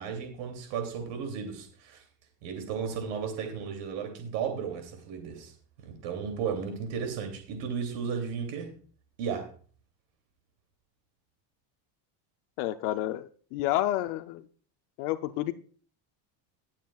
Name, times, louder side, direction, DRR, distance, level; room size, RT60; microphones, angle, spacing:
voice 1, 0.0-2.0 2.4-5.5 5.8-8.7 9.2-9.5, right 6 dB, 85° right, 5 dB, 2.8 m, -34 dB
voice 2, 12.6-14.4 15.0-15.5, left 14 dB, 70° left, 8 dB, 0.7 m, -30 dB
19.5 x 7.5 x 2.3 m, 0.43 s
cardioid pair, 160°, 49 cm